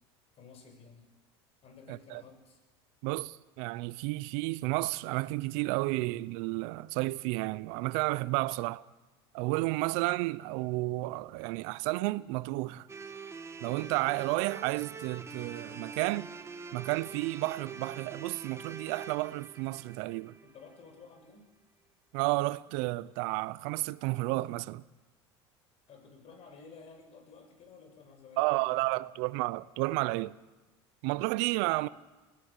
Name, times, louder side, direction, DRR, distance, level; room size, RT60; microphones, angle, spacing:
voice 1, 0.3-1.1 1.6-2.6 20.4-21.5 25.9-29.1 31.7-31.8, left 5 dB, 45° left, 6.6 m, -53 dB
voice 2, 1.9-2.2 3.0-8.8 9.3-12.9 13.6-16.3 16.7-20.3 22.1-24.8 28.4-30.4 31.0-31.9, right 21 dB, 70° right, 0.7 m, -32 dB
sound 1, 12.9-21.0, right 5 dB, 20° right, 1.7 m, -45 dB
21.0 x 17.0 x 9.0 m
supercardioid pair, 95°, 14 cm